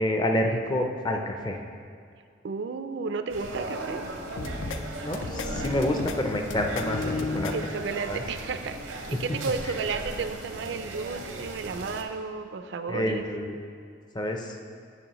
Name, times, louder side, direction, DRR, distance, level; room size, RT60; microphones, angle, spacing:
voice 1, 0.0-1.6 5.0-7.5 8.1-8.2 9.1-9.4 9.6-9.7 12.9-13.5 14.1-14.6, left 1 dB, 20° left, 3 dB, 0.4 m, -28 dB
voice 2, 2.4-4.1 7.5-13.2, right 4 dB, 60° right, 9 dB, 0.3 m, -33 dB
sound 1, 3.3-12.0, right 2 dB, 85° right, 0.7 m, -38 dB
sound 2, 4.1-8.3, left 3 dB, 60° left, 0.8 m, -36 dB
sound 3, 4.4-4.8 5.1-6.2 6.5-7.5, left 4 dB, 85° left, 0.5 m, -36 dB
11.0 x 5.2 x 3.0 m, 2.3 s
head